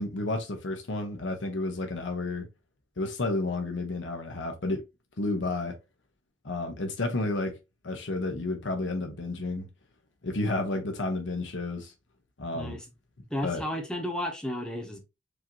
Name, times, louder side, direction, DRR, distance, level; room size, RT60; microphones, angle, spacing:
voice 1, 0.0-2.5 3.0-4.8 5.2-5.8 6.4-7.6 7.8-9.7 10.2-11.9 12.4-12.8 13.4-13.6, left 2 dB, 85° left, 0.9 m, -31 dB
voice 2, 12.5-12.8 13.3-15.0, left 1 dB, 5° left, 1.0 m, -33 dB
4.9 x 2.7 x 2.9 m
head